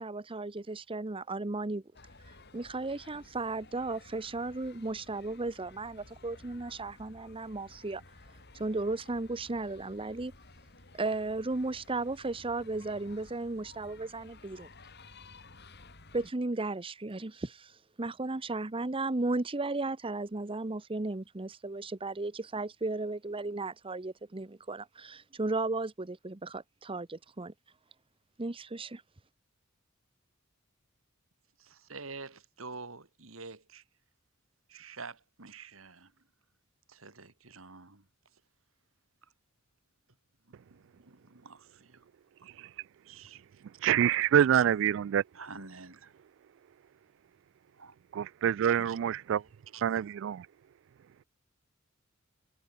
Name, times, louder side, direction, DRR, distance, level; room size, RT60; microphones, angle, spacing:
voice 1, 0.0-1.8 2.5-8.0 8.5-10.3 10.9-14.7 16.1-27.5 28.4-29.0, right 2 dB, 25° right, 0.8 m, -35 dB
sound 1, 1.9-16.3, left 2 dB, 55° left, 6.0 m, -55 dB
voice 2, 31.6-33.8 34.7-36.1 36.9-38.1 40.5-42.1 42.4-42.7 43.1-43.6 44.4-44.7 45.3-46.1 47.8-47.9 48.6-49.0 49.7-49.8, right 4 dB, 80° right, 3.1 m, -48 dB
voice 3, 43.8-45.2 48.1-49.4 49.8-50.5, right 9 dB, 60° right, 0.3 m, -26 dB
head